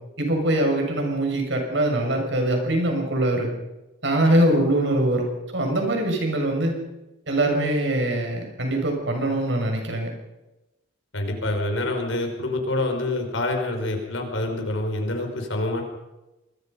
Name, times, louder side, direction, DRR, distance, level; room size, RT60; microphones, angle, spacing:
voice 1, 0.2-3.5 4.0-6.8 7.3-10.1, right 1 dB, 60° right, 3 dB, 6.7 m, -23 dB
voice 2, 11.1-15.8, left 2 dB, 75° left, 4 dB, 5.2 m, -26 dB
26.5 x 22.0 x 5.5 m, 1.0 s
head